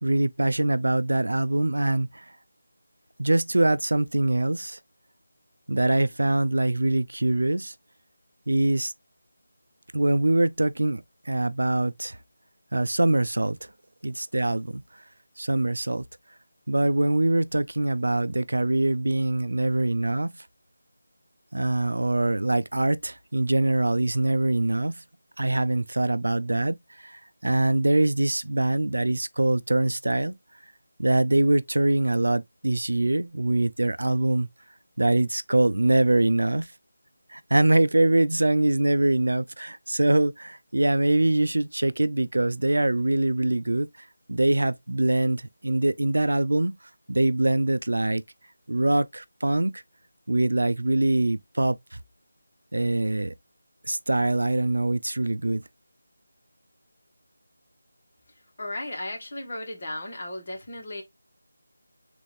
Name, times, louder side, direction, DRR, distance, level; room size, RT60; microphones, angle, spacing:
voice 1, 0.0-2.2 3.2-4.8 5.7-7.7 8.5-8.9 9.9-12.2 12.7-13.6 14.0-14.8 15.4-16.0 16.7-20.3 21.5-25.0 25.4-26.8 27.0-30.4 31.0-34.5 35.0-36.7 37.3-43.9 44.3-46.7 47.1-48.2 48.7-49.8 50.3-52.0 52.7-53.3 53.8-55.6, right 2 dB, 85° right, 0.4 m, -23 dB
voice 2, 58.6-61.0, left 1 dB, 40° left, 1.3 m, -35 dB
3.4 x 2.5 x 3.2 m
figure-of-eight pair, 170°, 0 cm